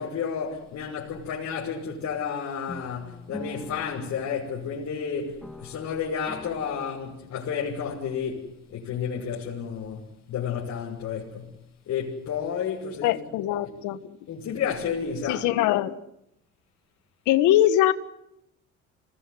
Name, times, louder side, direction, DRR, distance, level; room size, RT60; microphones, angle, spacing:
voice 1, 0.0-11.6 11.9-13.3 14.3-15.5, left 7 dB, 60° left, 6.2 m, -31 dB
sound 1, 2.7-5.0 5.4-7.7, left 1 dB, ahead, 2.3 m, -45 dB
voice 2, 13.0-14.2 15.3-15.9 17.3-17.9, left 13 dB, 85° left, 1.6 m, -22 dB
26.5 x 19.5 x 9.7 m
cardioid pair, 95°, 29 cm